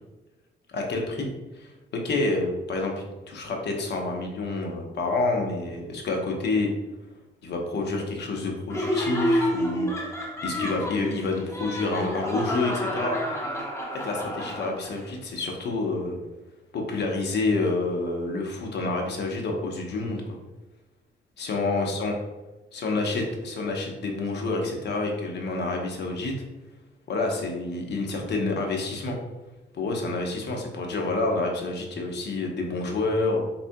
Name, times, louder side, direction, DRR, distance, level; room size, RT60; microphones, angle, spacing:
voice 1, 0.7-6.7 7.4-13.2 14.0-16.2 16.7-20.2 21.4-22.1 22.7-26.3 27.1-29.2 29.7-33.4, left 3 dB, 60° left, 1 dB, 0.9 m, -28 dB
Laughter, 8.7-15.0, equal, 15° left, 0.8 m, -29 dB
4.2 x 3.6 x 2.2 m, 1.1 s
cardioid pair, 90°, 20 cm